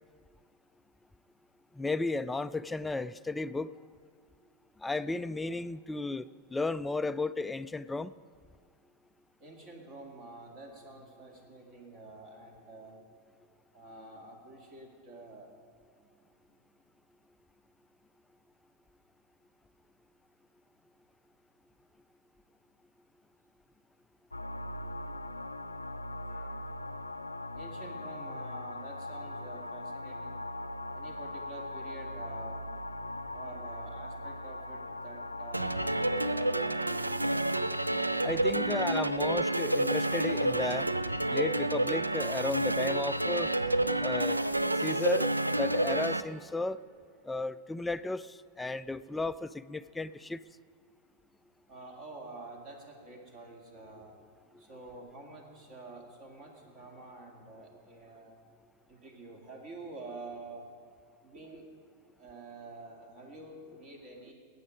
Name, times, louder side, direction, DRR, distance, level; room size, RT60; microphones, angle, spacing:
voice 1, 1.7-3.7 4.8-8.1 38.2-40.9 41.3-43.5 44.0-44.4 44.8-45.3 45.6-46.8 47.3-50.4, left 3 dB, 10° left, 14 dB, 0.3 m, -34 dB
voice 2, 9.4-13.0 13.7-15.5 16.0-16.1 26.3-26.7 27.5-30.4 30.9-32.7 33.3-35.9 36.2-37.1 51.7-54.1 54.6-58.3 58.9-60.7 61.2-61.6 62.2-64.3, right 2 dB, 40° right, 2 dB, 2.1 m, -48 dB
sound 1, 24.3-36.3, left 1 dB, 80° left, 0.4 m, -40 dB
sound 2, 35.5-46.2, right 1 dB, 85° right, 0.4 m, -29 dB
19.5 x 8.7 x 5.0 m, 2.2 s
figure-of-eight pair, 90°, 0 cm